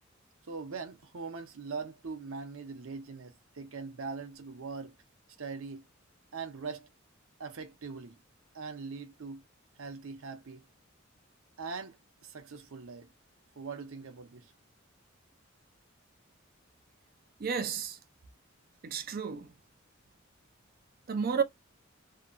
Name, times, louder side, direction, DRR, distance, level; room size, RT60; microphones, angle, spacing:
voice 1, 0.5-5.0 5.4-5.8 6.3-6.9 7.4-8.2 8.5-9.4 9.8-10.6 11.6-13.1 13.6-14.5, right 4 dB, 85° right, 0.7 m, -41 dB
voice 2, 17.4-18.0 18.8-19.5 21.1-21.4, right 6 dB, 45° right, 0.5 m, -31 dB
2.9 x 2.3 x 2.4 m
head